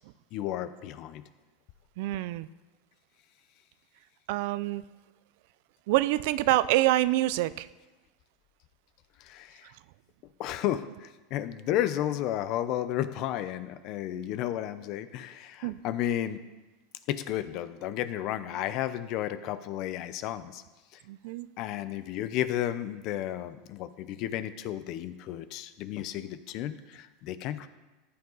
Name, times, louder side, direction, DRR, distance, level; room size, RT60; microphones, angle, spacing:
voice 1, 0.3-1.2 9.2-9.7 10.4-16.4 17.1-20.6 20.9-21.0 21.6-27.7, left 12 dB, 50° left, 13 dB, 0.7 m, -33 dB
voice 2, 2.0-2.5 4.3-4.8 5.9-7.7 15.6-15.8 21.1-21.5, right 16 dB, 65° right, 17 dB, 0.4 m, -26 dB
14.0 x 9.9 x 4.0 m, 1.2 s
supercardioid pair, 135°, 0 cm